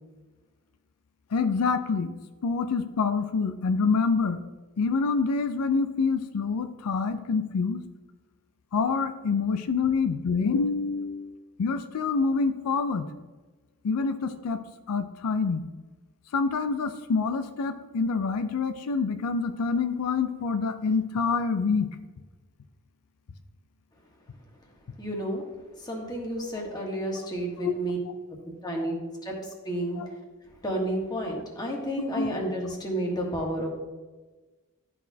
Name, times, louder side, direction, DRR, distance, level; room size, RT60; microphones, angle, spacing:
voice 1, 1.3-2.1 2.4-4.4 4.8-7.8 8.7-11.3 11.6-13.1 13.8-14.6 14.9-15.6 16.3-21.9 27.6-27.7 30.0-30.1 32.1-32.3, left 4 dB, 85° left, 8 dB, 0.4 m, -26 dB
voice 2, 25.0-25.4 25.8-28.0 28.6-29.0 29.2-29.3 29.6-30.0 30.6-33.7, right 1 dB, 20° left, -1 dB, 1.4 m, -31 dB
12.0 x 4.2 x 2.7 m, 1.3 s
head